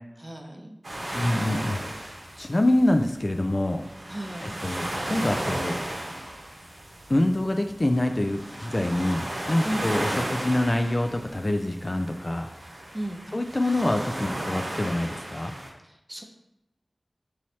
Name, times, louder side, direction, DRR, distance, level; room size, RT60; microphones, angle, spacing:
voice 1, 0.2-0.8 4.1-4.5 9.6-9.9 12.9-13.2 15.8-16.2, right 1 dB, 20° right, 2 dB, 0.7 m, -35 dB
sound 1, 0.8-15.7, right 1 dB, 80° right, 0.9 m, -35 dB
voice 2, 1.1-3.8 4.4-5.8 7.1-12.5 13.3-15.5, left 1 dB, 40° left, 4 dB, 0.3 m, -26 dB
5.6 x 3.1 x 2.8 m, 0.86 s
wide cardioid pair, 60°, 0 cm